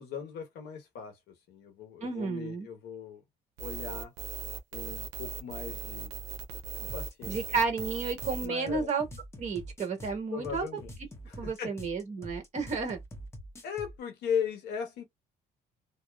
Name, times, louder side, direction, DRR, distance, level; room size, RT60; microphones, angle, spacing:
voice 1, 0.0-3.2 3.6-4.1 4.7-6.1 6.8-7.4 8.4-8.9 10.3-11.0 11.3-11.8 13.6-15.0, left 7 dB, 80° left, 1.0 m, -38 dB
voice 2, 2.0-2.7 7.3-9.0 9.4-10.6 11.4-13.0, right 4 dB, 45° right, 1.3 m, -32 dB
sound 1, 3.6-8.5, right 7 dB, 80° right, 0.6 m, -39 dB
sound 2, 6.9-14.0, equal, 15° left, 0.7 m, -45 dB
2.7 x 2.0 x 2.3 m
cardioid pair, 110°, 17 cm